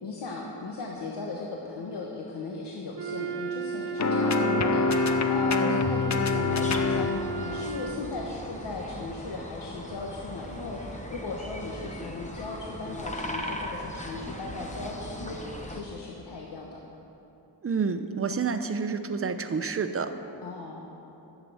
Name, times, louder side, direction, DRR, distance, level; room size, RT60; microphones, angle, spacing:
voice 1, 0.0-15.4 15.7-16.8 20.4-20.9, left 3 dB, 90° left, -2 dB, 1.2 m, -37 dB
Wind instrument woodwind instrument, 2.9-8.1, right 6 dB, 80° right, 1.2 m, -33 dB
sound 1, 4.0-7.2, left 4 dB, 45° left, 0.7 m, -25 dB
sound 2, 6.5-15.8, equal, 20° left, 1.1 m, -39 dB
voice 2, 17.6-20.1, right 5 dB, 35° right, 8 dB, 0.7 m, -29 dB
11.5 x 7.6 x 7.8 m, 3.0 s
wide cardioid pair, 95°, 40 cm